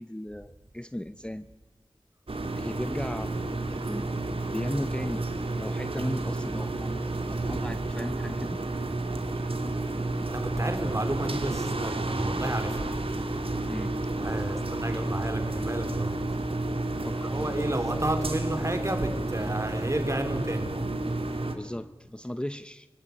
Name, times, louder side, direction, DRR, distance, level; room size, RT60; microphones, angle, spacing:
voice 1, 0.0-1.4 2.6-3.4 3.7-4.1 4.5-5.2 5.6-8.6 9.4-9.5 13.7-13.9 14.3-14.6 17.0-17.5 21.5-22.9, left 1 dB, 10° left, 12 dB, 0.7 m, -36 dB
sound 1, 2.3-21.5, right 2 dB, 65° right, 2.8 m, -31 dB
voice 2, 10.3-12.9 14.2-16.2 17.1-20.7, right 1 dB, 30° right, 6 dB, 4.2 m, -31 dB
27.5 x 18.0 x 9.7 m, 1.2 s
wide cardioid pair, 55°, 10 cm